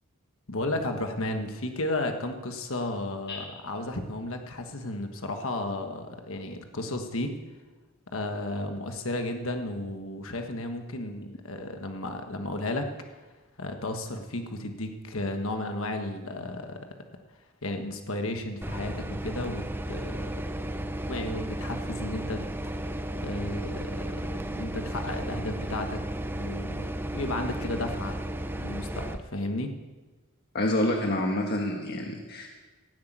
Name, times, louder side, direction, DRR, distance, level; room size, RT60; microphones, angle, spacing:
voice 1, 0.5-7.4 8.1-12.9 13.6-16.8 17.6-20.3 21.1-22.4 22.8-26.0 26.4-26.9 27.1-28.2 28.6-29.7, left 1 dB, 65° left, 5 dB, 1.4 m, -33 dB
sound 1, 18.6-29.2, right 1 dB, 10° right, 0.6 m, -34 dB
voice 2, 30.5-32.5, left 1 dB, 50° left, 1 dB, 1.4 m, -27 dB
16.5 x 8.3 x 9.2 m, 1.3 s
head